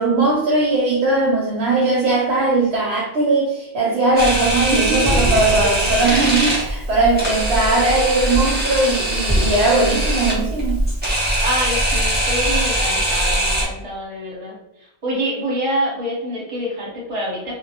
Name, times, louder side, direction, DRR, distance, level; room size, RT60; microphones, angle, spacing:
voice 1, 0.0-10.8, right 2 dB, 65° right, -4 dB, 0.8 m, -19 dB
Camera, 4.2-13.7, right 1 dB, 15° right, 0.4 m, -21 dB
voice 2, 11.4-14.6 15.0-17.5, equal, 30° right, -4 dB, 0.8 m, -26 dB
2.1 x 2.0 x 2.8 m, 0.86 s
omnidirectional pair, 1.2 m